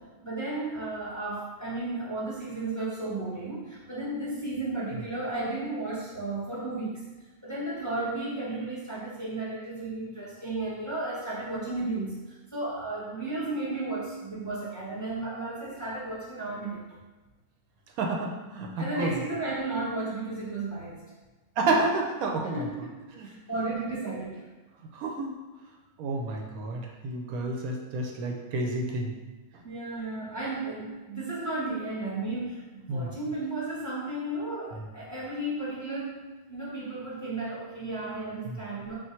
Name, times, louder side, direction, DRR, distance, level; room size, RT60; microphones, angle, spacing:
voice 1, 0.0-7.0 7.4-16.9 18.8-21.0 22.5-22.9 23.2-24.5 29.6-38.9, right 2 dB, 15° left, -8 dB, 0.6 m, -34 dB
voice 2, 18.0-19.1 21.6-22.7 23.2-23.3 24.9-25.3 26.0-29.1 32.9-33.1 38.4-38.6, right 2 dB, 90° right, 1 dB, 1.1 m, -30 dB
3.6 x 2.5 x 4.3 m, 1.2 s
omnidirectional pair, 1.5 m